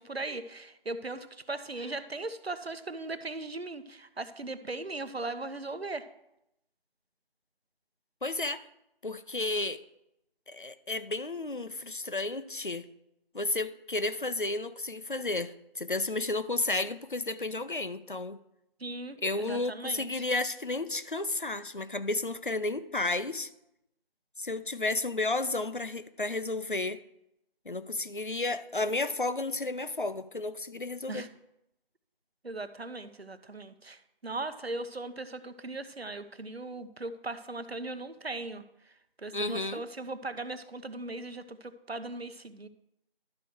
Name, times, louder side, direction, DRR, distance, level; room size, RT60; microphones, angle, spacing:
voice 1, 0.0-6.1 18.8-20.3 31.1-31.3 32.4-38.6 39.2-42.7, right 2 dB, 85° right, 0.9 m, -38 dB
voice 2, 8.2-8.6 9.0-9.8 10.5-12.9 13.3-18.4 19.2-23.5 24.4-27.0 27.7-31.3 39.3-39.8, left 2 dB, 55° left, 0.6 m, -32 dB
12.0 x 4.7 x 6.2 m
figure-of-eight pair, 175°, 30 cm